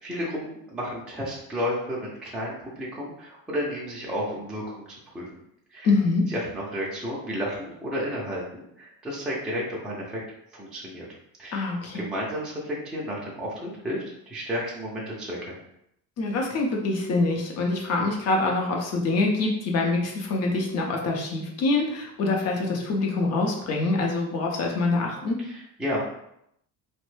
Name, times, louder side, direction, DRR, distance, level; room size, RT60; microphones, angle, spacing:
voice 1, 0.0-4.8 5.1-5.3 5.7-5.9 6.3-10.2 10.5-11.0 11.4-11.7 11.9-15.5 25.4-26.1, equal, ahead, -5 dB, 0.4 m, -32 dB
voice 2, 5.8-6.2 11.5-12.0 16.2-25.4, left 3 dB, 45° left, 0 dB, 0.7 m, -25 dB
3.0 x 2.1 x 3.1 m, 0.76 s
cardioid pair, 160°, 35 cm